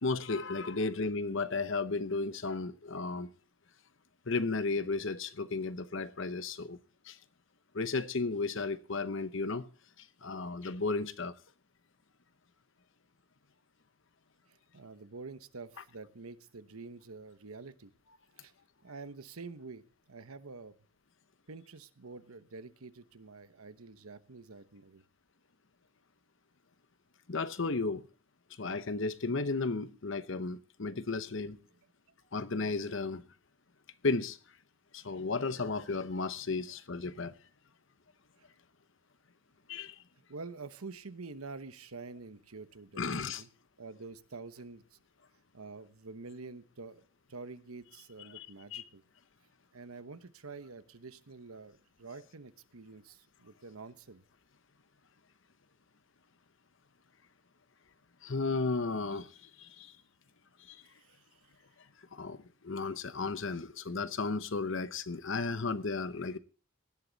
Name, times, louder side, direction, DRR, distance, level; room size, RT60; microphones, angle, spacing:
voice 1, 0.0-3.3 4.3-6.8 7.1-7.2 7.7-9.7 10.0-11.3 27.3-28.0 28.6-31.6 32.3-33.2 34.0-34.4 34.9-37.3 39.7-40.0 43.0-43.4 48.3-48.5 48.7-48.8 58.2-59.9 60.6-60.8 62.1-66.4, left 3 dB, 60° left, 0.9 m, -34 dB
voice 2, 14.5-17.9 18.4-18.5 18.8-20.7 21.5-25.0 32.2-32.3 40.3-43.5 43.8-45.0 45.5-49.0 49.7-54.2 60.8-61.5, right 3 dB, 90° right, 1.1 m, -47 dB
18.0 x 11.5 x 4.0 m
head